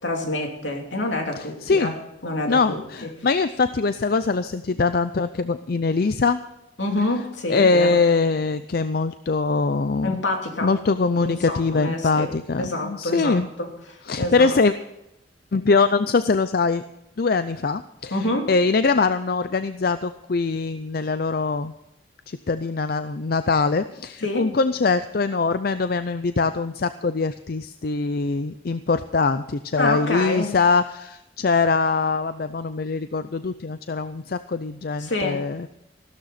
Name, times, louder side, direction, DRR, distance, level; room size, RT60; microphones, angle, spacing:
voice 1, 0.0-1.9 2.2-3.1 6.8-8.0 10.0-10.7 11.2-14.5 18.1-18.5 24.2-24.5 29.8-30.5 35.0-35.4, left 2 dB, 75° left, 2 dB, 2.9 m, -27 dB
voice 2, 1.3-1.9 2.5-6.4 7.5-10.2 10.6-13.5 14.1-14.7 15.5-16.8 17.2-21.7 22.3-35.7, left 4 dB, 50° left, 12 dB, 0.5 m, -22 dB
15.5 x 13.0 x 4.2 m, 0.88 s
head